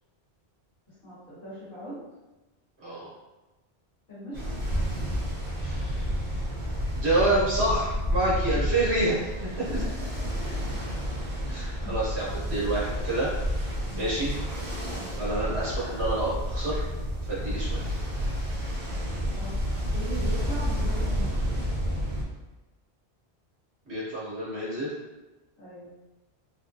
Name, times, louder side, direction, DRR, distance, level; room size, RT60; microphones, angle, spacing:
voice 1, 1.0-2.0 4.1-4.4 9.7-10.8 11.8-11.9 13.9-14.2 15.0-15.5 18.9-19.6 19.9-21.5 25.6-25.9, equal, 60° left, -12 dB, 1.6 m, -41 dB
voice 2, 2.8-3.1 5.6-6.0 6.9-9.2 9.7-9.8 11.5-13.6 14.0-14.3 15.2-16.8 17.3-17.9 23.8-24.9, right 2 dB, 85° right, -8 dB, 1.4 m, -28 dB
Ocean, 4.3-22.2, equal, 50° right, 0.6 m, -30 dB
3.5 x 2.2 x 2.5 m, 1.1 s
omnidirectional pair, 1.1 m